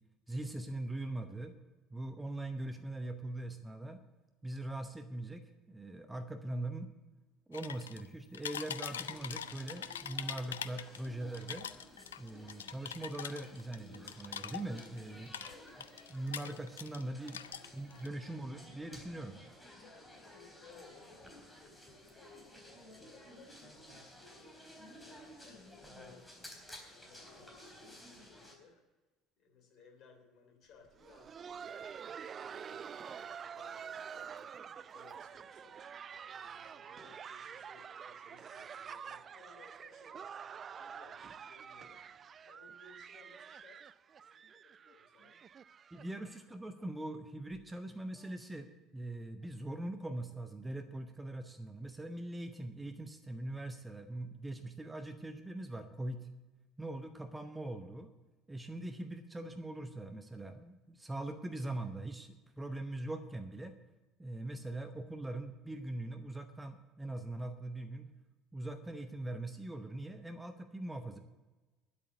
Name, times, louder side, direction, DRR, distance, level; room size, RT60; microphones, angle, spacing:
voice 1, 0.3-1.5 1.9-4.0 4.4-6.9 7.5-11.7 12.2-15.4 16.1-17.4 17.7-19.4 45.9-56.3 56.8-58.1 58.5-63.7 64.2-68.1 68.5-71.2, right 1 dB, 10° right, 8 dB, 0.9 m, -42 dB
sound 1, 7.5-8.1 8.3-11.1 11.3-15.0 15.3-17.0 17.3-18.1, left 9 dB, 75° left, 0.4 m, -43 dB
sound 2, 8.9-28.5, left 1 dB, 5° left, 3.9 m, -55 dB
voice 2, 15.4-16.6 19.8-24.3 24.9-26.0 26.4-28.8 29.4-34.5 34.9-35.8 36.3-40.3 40.7-42.0 42.4-45.4 45.9-46.2, left 4 dB, 50° left, 3 dB, 3.0 m, -62 dB
Laughter, 30.9-46.5 46.8-46.9 47.5-47.6 48.2-48.4 49.4-49.5, right 7 dB, 35° right, 0.4 m, -48 dB
10.5 x 8.1 x 8.3 m, 1.2 s
figure-of-eight pair, 60°, 0 cm